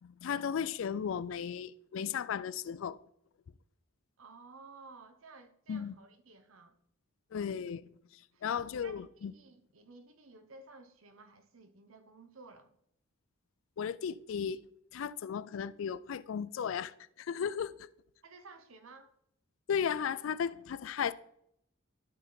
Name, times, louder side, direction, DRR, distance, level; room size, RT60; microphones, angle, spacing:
voice 1, 0.0-3.0 5.7-5.9 7.3-9.3 13.8-14.6 14.9-17.9 19.7-21.1, left 7 dB, 70° left, 0.3 m, -35 dB
voice 2, 4.2-6.8 8.3-12.7 18.2-19.1, right 3 dB, 85° right, 1.0 m, -55 dB
12.5 x 4.3 x 3.9 m
head